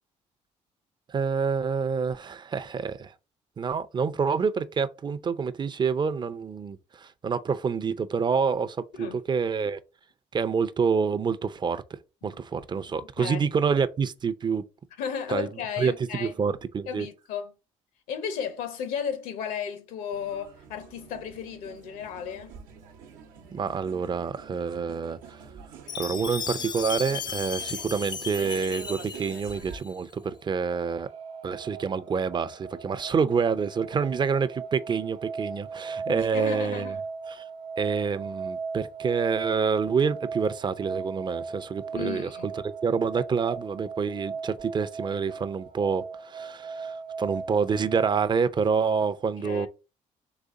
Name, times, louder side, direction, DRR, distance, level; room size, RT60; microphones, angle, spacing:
voice 1, 1.1-3.1 3.6-9.8 10.3-11.8 12.2-14.6 15.3-15.5 15.8-17.1 23.5-25.4 26.0-31.1 31.4-36.9 37.3-37.4 37.8-42.3 42.6-49.7, right 5 dB, 30° right, 0.5 m, -27 dB
voice 2, 13.0-13.4 15.0-16.3 16.9-17.5 18.1-22.6 36.0-37.0 41.9-42.5 49.4-49.7, left 7 dB, 80° left, 0.9 m, -34 dB
sound 1, 20.1-29.8, right 6 dB, 85° right, 0.9 m, -46 dB
Chime, 25.9-30.0, left 7 dB, 30° left, 0.3 m, -35 dB
sound 2, 30.1-48.3, right 5 dB, 50° right, 1.0 m, -38 dB
4.0 x 3.3 x 3.7 m
supercardioid pair, 75°, 14 cm